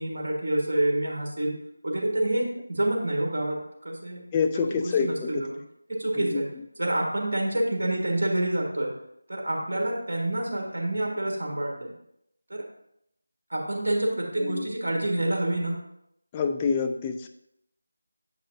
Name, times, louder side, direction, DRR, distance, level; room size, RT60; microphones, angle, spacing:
voice 1, 0.0-1.5 1.8-3.6 3.8-4.2 4.7-5.6 5.9-6.5 6.8-8.9 9.3-11.9 12.5-12.6 13.5-15.8, right 1 dB, 50° right, 0 dB, 1.6 m, -27 dB
voice 2, 4.3-5.5 6.1-6.4 14.4-14.7 16.3-17.3, left 5 dB, 15° left, 5 dB, 0.3 m, -27 dB
7.7 x 5.0 x 2.6 m, 0.78 s
figure-of-eight pair, 165°, 0 cm